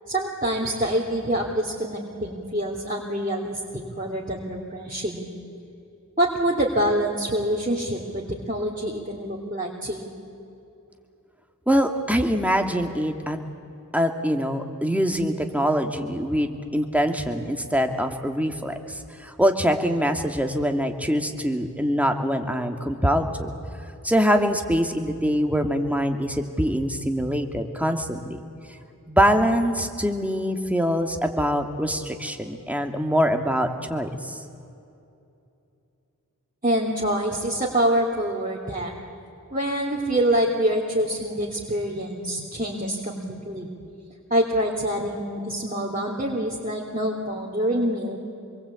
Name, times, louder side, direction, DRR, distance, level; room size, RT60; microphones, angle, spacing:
voice 1, 0.1-3.6 4.0-5.3 6.2-10.1 36.6-39.0 39.5-43.2 43.5-43.7 44.3-48.2, right 1 dB, 25° right, -4 dB, 3.2 m, -26 dB
voice 2, 11.7-13.4 13.9-23.5 24.0-28.4 29.1-34.4, equal, 5° right, 4 dB, 2.5 m, -24 dB
26.0 x 23.0 x 8.5 m, 2.7 s
wide cardioid pair, 45°, 32 cm